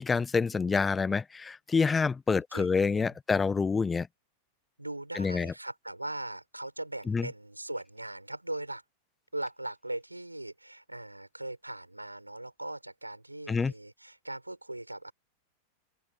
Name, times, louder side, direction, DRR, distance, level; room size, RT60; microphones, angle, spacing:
voice 1, 0.0-4.1 5.1-5.5 7.1-7.3 13.5-13.7, left 5 dB, 15° left, 0.9 m, -27 dB
voice 2, 2.3-3.1 4.8-8.8 9.3-15.1, right 1 dB, 85° right, 6.2 m, -40 dB
figure-of-eight pair, 90°, 0 cm